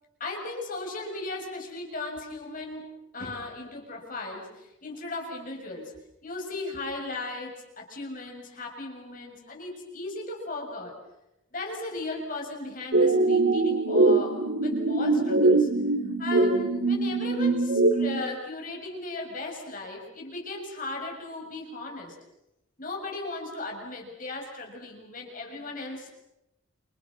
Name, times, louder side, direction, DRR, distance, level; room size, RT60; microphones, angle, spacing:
voice 1, 0.2-5.9 6.2-11.0 11.5-15.7 16.2-22.2 22.8-26.1, left 2 dB, 45° left, 1 dB, 7.0 m, -37 dB
sound 1, 12.9-18.2, right 2 dB, 70° right, 2.7 m, -23 dB
29.5 x 29.0 x 6.4 m, 0.87 s
head